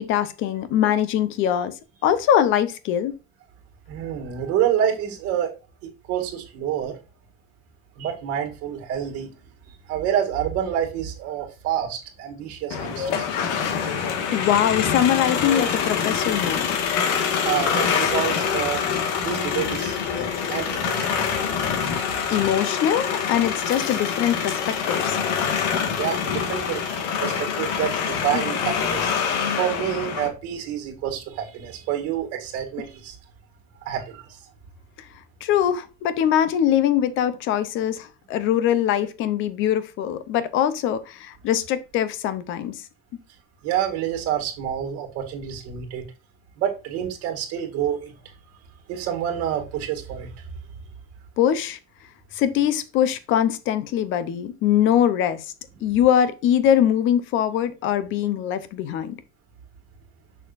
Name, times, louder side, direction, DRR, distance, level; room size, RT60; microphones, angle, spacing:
voice 1, 0.0-1.7 2.0-3.1 14.3-16.8 22.3-25.2 28.3-28.4 35.4-42.8 51.4-51.8 52.3-55.5 55.8-59.1, left 10 dB, 35° left, 0.6 m, -22 dB
voice 2, 3.9-5.5 5.8-7.0 8.0-9.3 9.6-13.3 17.4-18.9 19.2-21.4 26.0-29.1 29.6-33.2 33.8-34.4 43.6-46.0 46.6-48.1 48.9-50.4 55.8-56.0, right 10 dB, 40° right, 2.1 m, -28 dB
sound 1, 12.7-30.3, left 7 dB, 75° left, 1.6 m, -25 dB
6.6 x 6.3 x 2.5 m
cardioid pair, 175°, 37 cm